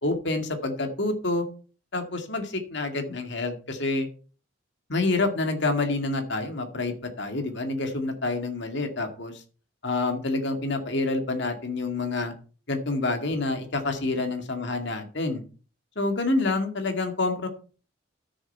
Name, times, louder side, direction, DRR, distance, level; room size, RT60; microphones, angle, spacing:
voice 1, 0.0-1.5 1.9-4.1 4.9-9.4 9.8-12.3 12.7-15.4 16.0-17.5, left 2 dB, 60° left, 6 dB, 2.2 m, -27 dB
12.5 x 7.0 x 4.5 m, 0.37 s
head